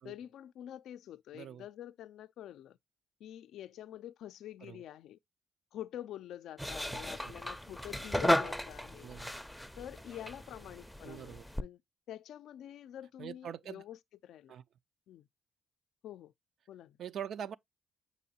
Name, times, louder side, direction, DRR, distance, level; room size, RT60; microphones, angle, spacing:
voice 1, 0.0-2.8 3.2-5.2 5.7-9.1 9.8-11.8 12.1-14.0 14.2-14.6 15.1-15.3 16.0-16.3 16.7-17.0, left 11 dB, 80° left, 0.4 m, -47 dB
voice 2, 1.3-1.6 4.6-4.8 6.9-7.3 9.0-9.4 11.0-11.5 13.2-13.8 14.5-14.6 17.0-17.6, right 9 dB, 70° right, 0.4 m, -44 dB
sound 1, 6.6-11.6, left 1 dB, ahead, 0.5 m, -35 dB
7.0 x 5.3 x 2.7 m
cardioid pair, 90°, 0 cm